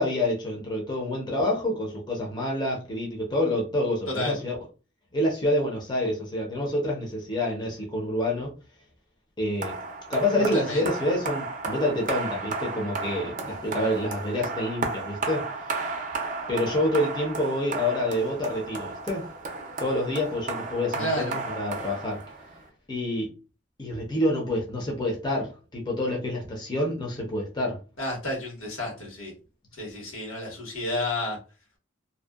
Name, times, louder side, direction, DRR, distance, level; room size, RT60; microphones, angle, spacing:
voice 1, 0.0-4.6 5.1-8.5 9.4-9.7 10.1-15.9 16.5-19.3 19.8-22.2 22.9-23.3 23.8-27.8, left 1 dB, 20° left, -2 dB, 0.6 m, -27 dB
voice 2, 4.1-4.4 10.5-10.9 21.0-21.3 28.0-29.3 29.8-31.4, left 1 dB, 90° left, -2 dB, 1.3 m, -31 dB
sound 1, 9.6-22.6, right 3 dB, 40° right, 0.5 m, -34 dB
2.6 x 2.1 x 2.3 m, 0.33 s
head